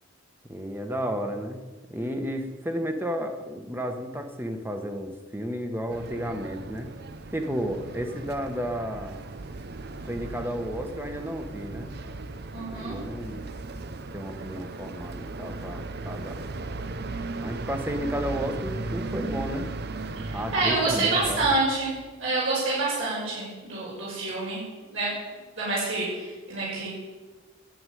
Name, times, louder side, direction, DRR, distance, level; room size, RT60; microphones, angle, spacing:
voice 1, 0.4-1.6 1.9-6.9 7.3-9.2 10.0-11.9 12.6-13.4 14.0-16.4 17.4-19.7 20.3-21.5, equal, 10° right, 5 dB, 1.2 m, -32 dB
sound 1, 5.9-21.6, right 3 dB, 55° right, 0.7 m, -37 dB
voice 2, 12.5-13.0 20.3-24.6 24.9-25.1 25.6-26.9, right 3 dB, 70° right, -8 dB, 5.9 m, -27 dB
11.5 x 8.0 x 9.3 m, 1.3 s
head